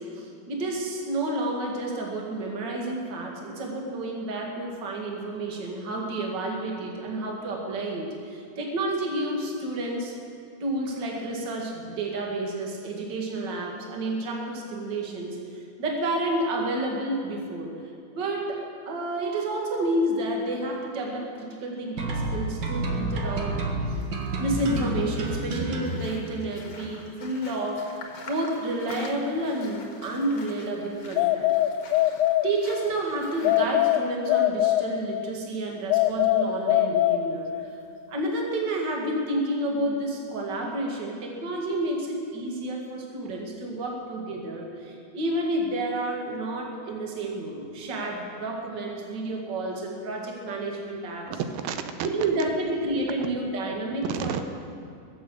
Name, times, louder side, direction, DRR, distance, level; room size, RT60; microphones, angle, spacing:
voice 1, 0.0-10.1 10.6-17.7 18.1-24.0 24.4-31.6 32.4-37.7 38.1-51.3 52.0-54.3, right 1 dB, 35° right, 0 dB, 2.1 m, -30 dB
sound 1, 22.0-26.0, right 2 dB, 55° right, 1.2 m, -29 dB
sound 2, 23.9-34.0, left 3 dB, 50° left, 2.2 m, -46 dB
sound 3, 31.2-32.9 33.5-35.4 35.9-37.8, left 13 dB, 80° left, 2.2 m, -23 dB
voice 2, 51.3-51.8 52.2-52.3 53.2-53.3 54.0-54.4, right 8 dB, 85° right, 8 dB, 2.6 m, -32 dB
22.0 x 7.9 x 6.6 m, 2.4 s
omnidirectional pair, 4.1 m